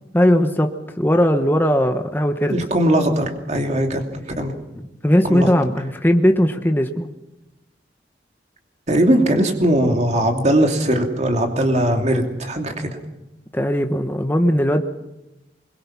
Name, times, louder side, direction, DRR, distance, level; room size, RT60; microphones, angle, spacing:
voice 1, 0.1-2.6 5.0-7.1 13.5-14.8, equal, 10° left, 5 dB, 1.1 m, -18 dB
voice 2, 2.5-4.0 4.4-4.5 5.3-5.5 8.9-12.9, right 1 dB, 40° right, 3 dB, 2.8 m, -19 dB
24.0 x 22.5 x 6.0 m, 0.97 s
head